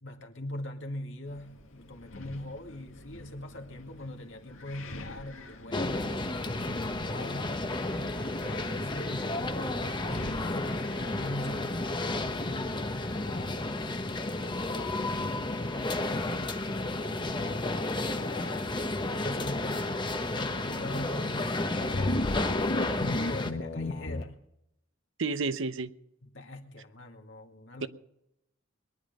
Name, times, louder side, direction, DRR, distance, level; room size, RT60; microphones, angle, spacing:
voice 1, 0.0-6.1 6.6-7.7 8.1-14.1 14.3-18.7 19.1-20.0 20.3-22.5 22.7-24.4 26.2-27.9, left 1 dB, 65° left, 2.1 m, -42 dB
Wind, 1.3-13.9, left 2 dB, 85° left, 2.0 m, -47 dB
sound 1, 5.7-23.5, left 2 dB, 25° left, 1.0 m, -32 dB
sound 2, 21.8-24.2, left 2 dB, 50° left, 1.3 m, -32 dB
voice 2, 25.2-25.9 27.8-27.9, right 4 dB, 70° right, 0.9 m, -30 dB
22.0 x 11.0 x 5.3 m
head